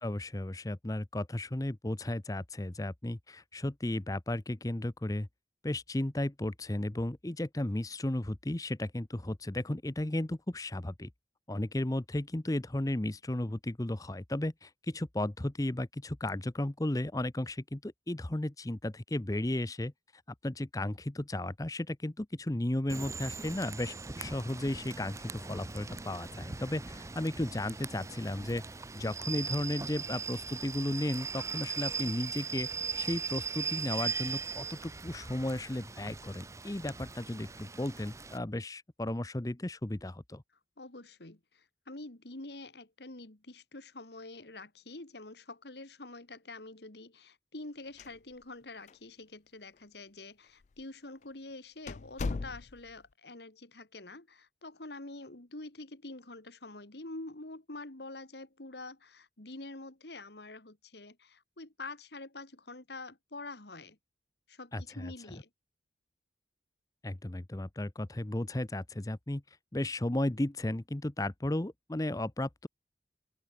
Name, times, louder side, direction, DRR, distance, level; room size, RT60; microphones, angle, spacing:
voice 1, 0.0-5.3 5.6-11.1 11.5-28.6 28.9-32.7 32.9-40.4 64.7-65.1 67.0-69.4 69.7-72.7, left 1 dB, 20° left, 0.7 m, -34 dB
Rain / Train, 22.9-38.4, right 5 dB, 15° right, 0.7 m, -39 dB
voice 2, 40.8-64.0 64.5-65.5, left 2 dB, 65° left, 2.2 m, -46 dB
sound 1, 47.8-48.6 48.9-49.0 49.7-49.8 50.6-50.8 51.2-51.3 51.9-53.0, left 3 dB, 40° left, 0.4 m, -38 dB
open air
head